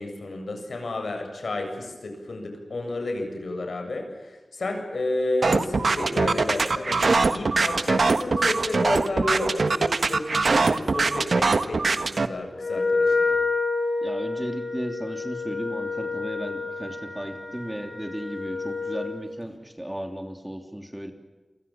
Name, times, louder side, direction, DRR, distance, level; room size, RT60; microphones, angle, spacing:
voice 1, 0.0-13.4, left 2 dB, 75° left, 4 dB, 7.6 m, -31 dB
sound 1, 5.4-12.3, right 3 dB, 65° right, 1.4 m, -22 dB
Wind instrument woodwind instrument, 12.6-19.2, left 3 dB, 45° left, 7.8 m, -28 dB
voice 2, 14.0-21.1, equal, 5° right, 5 dB, 3.2 m, -35 dB
29.0 x 24.5 x 7.3 m, 1.3 s
wide cardioid pair, 85°, 0 cm